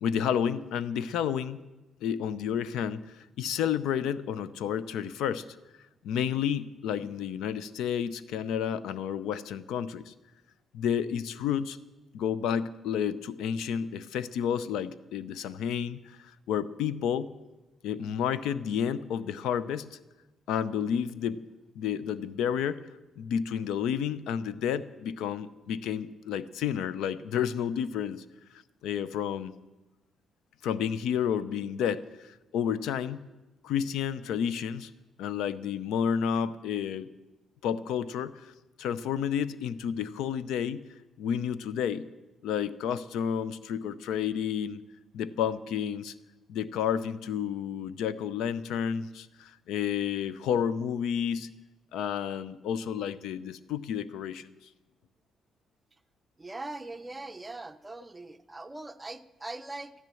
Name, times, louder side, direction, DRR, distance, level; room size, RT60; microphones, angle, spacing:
voice 1, 0.0-1.6 2.0-5.4 6.0-10.1 10.7-11.8 12.1-17.3 17.8-20.0 20.5-21.4 21.8-22.8 23.2-28.2 28.8-29.5 30.6-33.2 33.6-34.9 35.2-37.1 37.6-38.5 38.8-40.8 41.2-42.1 42.4-44.8 45.1-46.1 46.5-51.5 51.9-54.5, left 8 dB, 85° left, 16 dB, 0.5 m, -31 dB
voice 2, 56.4-59.9, right 2 dB, 15° right, 8 dB, 0.8 m, -41 dB
14.0 x 11.0 x 7.7 m, 1.1 s
cardioid pair, 90°, 0 cm